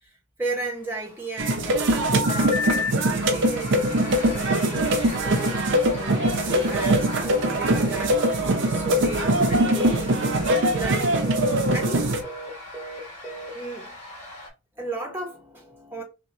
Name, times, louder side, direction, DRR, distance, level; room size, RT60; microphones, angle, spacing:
voice 1, 0.0-11.2 11.7-12.1 13.5-14.0 14.8-16.0, right 2 dB, 10° right, 0.7 m, -35 dB
sound 1, 0.7-14.5, left 1 dB, 35° left, 2.1 m, -40 dB
sound 2, 1.4-12.2, right 1 dB, 55° right, 0.6 m, -22 dB
sound 3, 2.0-2.9 4.2-8.5 8.7-9.0 9.2-9.5 9.7-10.0 10.2-13.5, left 1 dB, 15° left, 1.2 m, -33 dB
5.9 x 2.2 x 2.7 m
head